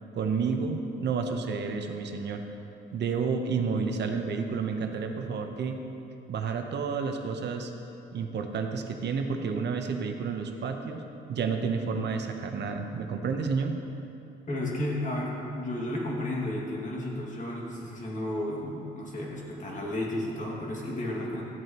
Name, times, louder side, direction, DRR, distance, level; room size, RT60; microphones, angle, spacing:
voice 1, 0.1-2.4 2.9-5.8 6.3-7.7 8.1-11.0 11.3-13.8, right 5 dB, 60° right, 5 dB, 0.9 m, -30 dB
voice 2, 14.5-21.4, left 1 dB, 40° left, -3 dB, 2.2 m, -33 dB
13.5 x 7.8 x 3.0 m, 2.8 s
cardioid pair, 90°, 20 cm